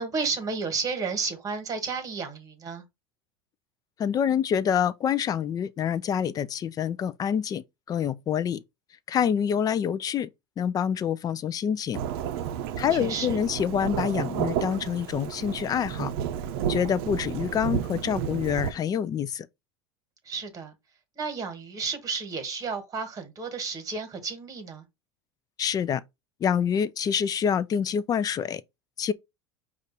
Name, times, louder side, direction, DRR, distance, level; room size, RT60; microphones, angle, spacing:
voice 1, 0.0-2.8 12.8-13.4 20.2-20.7 21.1-24.8, right 4 dB, 30° right, 1.5 m, -32 dB
voice 2, 4.0-8.6 9.1-10.3 10.6-12.0 12.8-16.1 16.7-19.5 25.6-26.0 26.4-28.6 29.0-29.1, left 8 dB, 30° left, 0.5 m, -26 dB
Thunderstorm / Rain, 11.9-18.7, right 9 dB, 70° right, 0.6 m, -31 dB
5.1 x 2.5 x 4.0 m
supercardioid pair, 115°, 13 cm